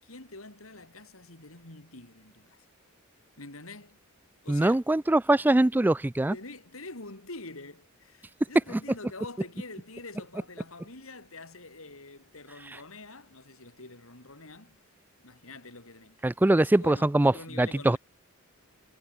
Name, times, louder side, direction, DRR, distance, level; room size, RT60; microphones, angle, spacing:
voice 1, 0.0-2.6 3.4-4.0 4.4-4.8 6.3-14.8 15.2-18.0, left 3 dB, 85° left, 4.7 m, -46 dB
voice 2, 4.5-6.3 8.7-8.8 16.2-17.3 17.6-18.0, right 1 dB, 10° right, 0.3 m, -22 dB
head